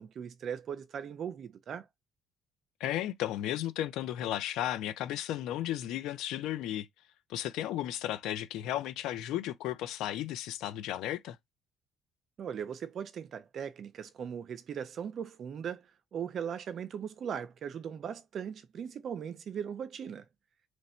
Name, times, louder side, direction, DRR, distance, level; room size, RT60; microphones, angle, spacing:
voice 1, 0.0-1.9 12.4-15.9 16.1-20.2, right 8 dB, 50° right, 0.6 m, -39 dB
voice 2, 2.8-6.9 7.3-11.4, left 13 dB, 85° left, 0.6 m, -34 dB
3.1 x 2.6 x 4.4 m
cardioid pair, 110°, 0 cm